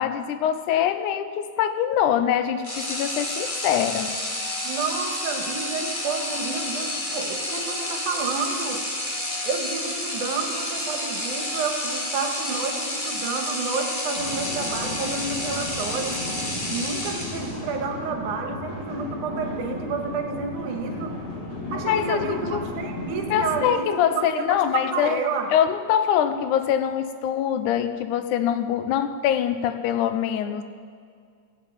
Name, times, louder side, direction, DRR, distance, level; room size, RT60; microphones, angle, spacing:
voice 1, 0.0-4.2 21.9-22.6 23.3-25.2 25.5-30.6, left 9 dB, 85° left, 10 dB, 2.2 m, -24 dB
sound 1, 2.6-17.7, left 1 dB, 25° left, 1.2 m, -30 dB
voice 2, 4.6-8.8 9.4-16.2 16.7-21.2 21.7-25.5, right 5 dB, 85° right, 3 dB, 2.9 m, -30 dB
sound 2, 14.2-23.6, left 2 dB, 65° left, 3.9 m, -34 dB
15.0 x 7.6 x 8.6 m, 2.2 s
omnidirectional pair, 3.4 m